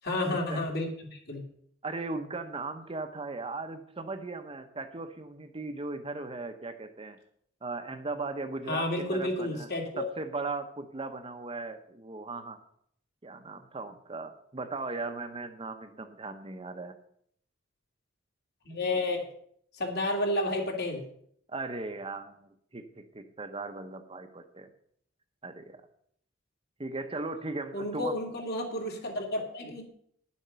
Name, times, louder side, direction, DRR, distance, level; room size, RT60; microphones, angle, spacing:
voice 1, 0.0-1.4 8.7-10.0 18.6-19.2 19.7-21.0 27.7-29.9, left 1 dB, 55° left, 1 dB, 2.8 m, -31 dB
voice 2, 1.8-7.2 7.6-9.7 10.0-12.6 13.2-16.9 21.5-24.7 25.4-25.8 26.8-28.2, right 3 dB, 30° right, 7 dB, 0.9 m, -38 dB
11.0 x 7.4 x 6.9 m, 0.66 s
head